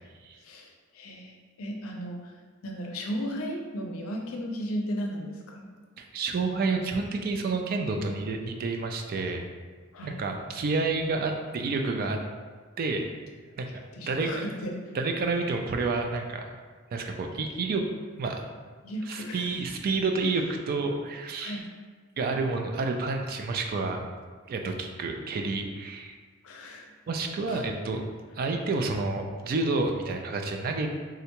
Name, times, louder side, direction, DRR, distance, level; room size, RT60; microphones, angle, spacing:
voice 1, 0.4-2.3 2.6-5.7 9.9-10.2 13.9-14.7 18.8-19.5 21.4-21.7 26.4-26.9 27.5-27.6, equal, 75° left, 0 dB, 0.5 m, -35 dB
voice 2, 6.0-9.5 10.0-12.2 12.8-13.1 13.6-14.3 14.9-16.4 16.9-17.8 18.2-18.4 19.1-21.6 22.2-24.0 24.5-26.2 27.1-28.0 28.4-30.9, right 3 dB, 45° right, 4 dB, 0.3 m, -29 dB
3.6 x 2.2 x 2.9 m, 1.5 s
head